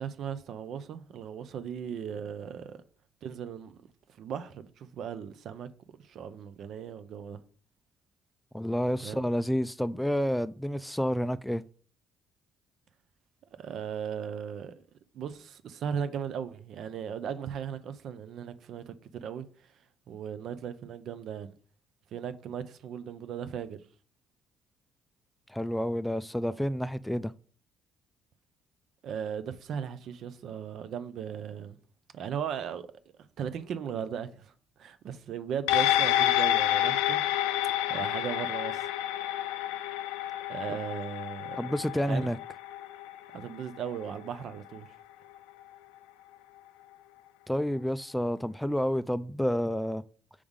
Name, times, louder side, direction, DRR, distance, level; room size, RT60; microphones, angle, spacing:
voice 1, 0.0-2.8 3.2-3.8 4.2-5.7 6.0-7.4 9.0-9.3 13.6-14.7 15.1-19.5 20.1-21.6 22.1-23.8 29.0-31.8 32.1-32.8 33.4-34.5 34.8-37.2 37.9-38.9 40.5-41.6 42.1-42.3 43.3-44.9, right 8 dB, 65° right, 0.6 m, -37 dB
voice 2, 8.5-11.6 25.5-27.3 41.5-42.4 47.5-50.0, equal, 5° left, 0.3 m, -29 dB
sound 1, 35.7-44.4 44.7-44.8, left 13 dB, 90° left, 0.3 m, -29 dB
4.9 x 3.5 x 5.4 m
supercardioid pair, 65°, 0 cm